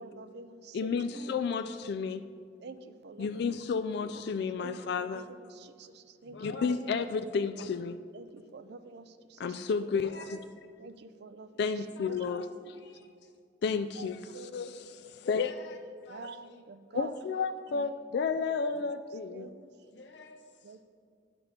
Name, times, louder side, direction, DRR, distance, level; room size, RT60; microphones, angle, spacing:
voice 1, 0.0-0.9 1.5-1.6 2.6-3.5 4.6-6.4 8.1-9.6 10.8-11.5 12.0-12.2 14.0-14.1 14.3-14.6 16.1-17.1 19.3-19.7 20.6-20.8, right 4 dB, 65° right, 11 dB, 0.5 m, -47 dB
voice 2, 0.7-2.3 3.2-5.3 6.4-8.0 9.4-10.4 11.6-12.5 13.6-15.5 16.9-19.5, left 5 dB, 65° left, 11 dB, 0.3 m, -32 dB
voice 3, 6.2-7.1 7.6-7.7 9.9-10.4 11.7-12.5 12.7-13.3 15.2-15.8 16.0-17.9 19.9-20.8, left 2 dB, 80° left, 3 dB, 1.0 m, -50 dB
10.5 x 6.0 x 5.2 m, 2.3 s
head